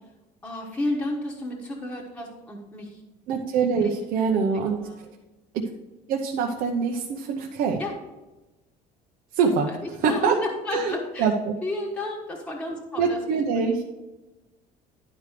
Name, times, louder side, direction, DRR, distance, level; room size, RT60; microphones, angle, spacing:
voice 1, 0.4-3.0 3.8-3.9 4.2-4.5 4.8-5.0 7.8-7.9 9.4-11.3 11.6-13.2 13.6-13.8, left 2 dB, 5° left, -2 dB, 1.3 m, -32 dB
voice 2, 3.3-5.1 6.1-7.8 9.3-9.7 10.0-10.4 10.7-11.5 13.0-13.8, right 5 dB, 65° right, 0 dB, 0.9 m, -24 dB
11.5 x 5.1 x 5.0 m, 1.1 s
cardioid pair, 175°, 17 cm